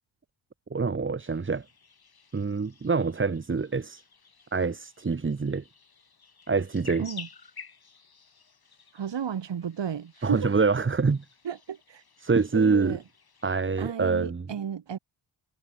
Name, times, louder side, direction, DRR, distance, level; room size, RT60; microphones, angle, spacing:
voice 1, 0.7-1.6 2.3-4.0 4.5-5.6 6.5-7.1 10.2-11.2 12.2-13.0 13.4-14.5, right 4 dB, 25° right, 1.2 m, -25 dB
sound 1, 1.2-13.9, left 5 dB, 45° left, 7.4 m, -52 dB
voice 2, 8.9-10.6 11.4-12.0 12.5-13.0 13.8-15.0, right 8 dB, 60° right, 2.5 m, -33 dB
supercardioid pair, 55°, 49 cm